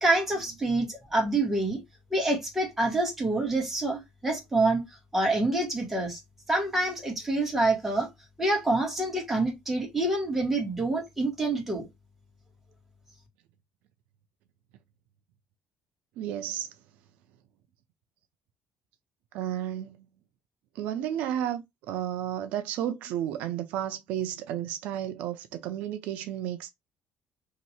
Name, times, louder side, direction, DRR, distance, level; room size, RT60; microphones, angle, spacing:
voice 1, 0.0-1.8 2.1-4.8 5.1-6.2 6.5-8.1 8.4-11.8, right 2 dB, 10° right, 1.8 m, -26 dB
voice 2, 16.2-16.7 19.3-20.0 20.8-26.7, right 11 dB, 85° right, 0.5 m, -32 dB
3.1 x 2.9 x 4.2 m
cardioid pair, 145°, 3 cm